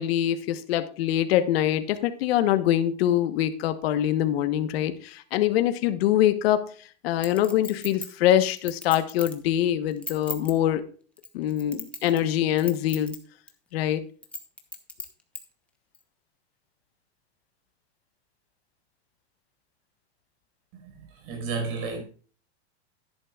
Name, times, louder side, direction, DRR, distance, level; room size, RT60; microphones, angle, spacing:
voice 1, 0.0-6.6 7.0-10.8 11.3-13.2 13.7-14.0, left 12 dB, 65° left, 1.2 m, -24 dB
Chink clink, 7.2-9.4 9.9-10.5 11.2-12.3 12.6-13.2 13.5-13.6 14.2-15.4 15.9-16.0, left 2 dB, 5° left, 0.9 m, -37 dB
voice 2, 20.8-22.0, right 4 dB, 45° right, 4.9 m, -32 dB
12.0 x 10.5 x 2.4 m
supercardioid pair, 145°, 33 cm